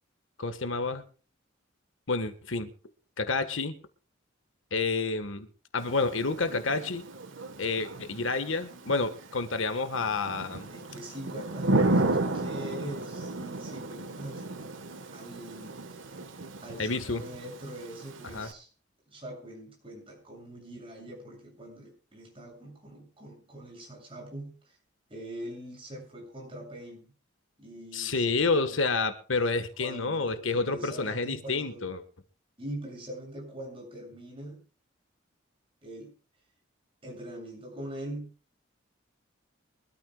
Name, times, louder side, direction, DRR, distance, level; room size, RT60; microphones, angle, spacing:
voice 1, 0.4-1.0 2.1-2.7 3.2-3.7 4.7-5.5 5.7-7.0 7.6-10.7 16.8-17.2 18.3-18.5 27.9-32.0, left 3 dB, 80° left, 10 dB, 1.5 m, -29 dB
Thunder / Rain, 5.8-18.5, right 2 dB, 75° right, 1.4 m, -34 dB
voice 2, 10.7-14.5 15.1-16.0 16.6-18.7 19.1-24.8 25.1-27.1 27.6-28.8 29.8-31.9 32.6-34.6 35.8-36.1 37.0-38.3, right 1 dB, 25° right, 0 dB, 7.4 m, -43 dB
24.0 x 13.5 x 2.4 m, 0.37 s
head